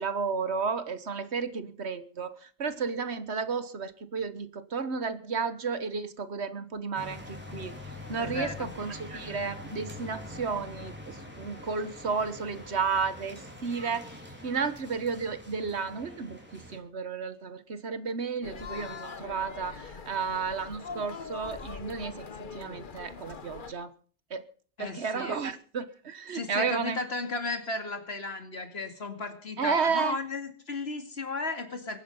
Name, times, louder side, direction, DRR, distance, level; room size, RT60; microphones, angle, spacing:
voice 1, 0.0-7.7 8.1-14.1 14.4-22.3 22.5-23.9 24.3-24.4 24.8-27.0 29.6-30.2, right 5 dB, 75° right, 1.6 m, -32 dB
sound 1, 6.9-16.8, left 1 dB, 10° right, 3.7 m, -44 dB
voice 2, 8.2-8.7 24.8-25.4 26.3-32.0, left 3 dB, 65° left, 2.6 m, -35 dB
sound 2, 18.4-23.7, left 5 dB, 50° left, 1.3 m, -42 dB
23.0 x 9.4 x 5.4 m
omnidirectional pair, 1.1 m